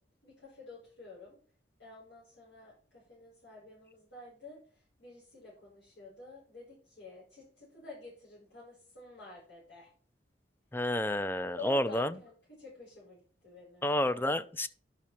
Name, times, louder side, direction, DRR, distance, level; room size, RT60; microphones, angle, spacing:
voice 1, 0.2-1.4 1.8-9.9 11.5-14.4, left 3 dB, 90° left, -8 dB, 5.5 m, -49 dB
voice 2, 10.7-12.1 13.8-14.7, left 1 dB, 10° left, 14 dB, 0.4 m, -30 dB
11.0 x 6.0 x 4.3 m, 0.43 s
head